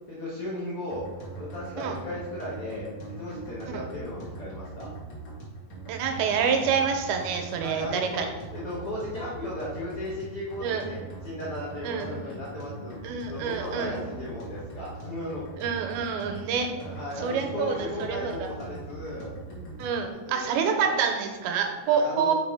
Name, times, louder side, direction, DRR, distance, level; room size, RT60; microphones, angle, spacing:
voice 1, 0.1-1.0 1.3-2.9 3.2-4.9 7.6-8.3 8.5-11.0 11.2-13.0 13.3-15.6 16.8-19.3 20.2-20.9 21.8-22.3, left 1 dB, 85° left, -6 dB, 1.2 m, -36 dB
sound 1, 0.9-20.1, right 3 dB, 55° left, 1.5 m, -41 dB
voice 2, 5.9-8.3 10.6-10.9 11.8-12.1 13.0-14.0 15.6-16.7 17.2-18.5 19.8-22.3, right 6 dB, 85° right, 4 dB, 2.5 m, -27 dB
5.4 x 5.0 x 4.7 m, 1.3 s
omnidirectional pair, 4.5 m